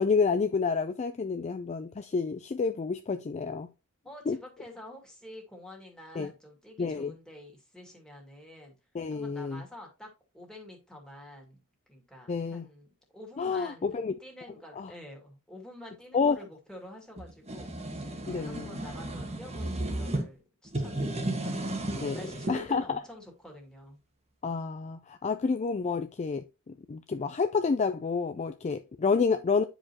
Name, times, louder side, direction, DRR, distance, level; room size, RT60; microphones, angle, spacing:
voice 1, 0.0-3.7 4.3-4.4 6.2-6.3 6.8-7.1 8.9-9.6 12.3-12.7 13.4-14.1 14.8-14.9 16.1-16.4 18.3-18.8 21.9-22.2 22.5-23.0 24.4-29.6, left 5 dB, 30° left, 0.3 m, -29 dB
voice 2, 4.0-8.8 9.1-11.6 11.9-12.9 13.1-21.6 22.1-24.0, left 1 dB, 5° left, 2.1 m, -48 dB
sound 1, 17.2-20.2 20.7-22.6, right 1 dB, 30° right, 1.3 m, -34 dB
9.5 x 5.1 x 2.9 m
head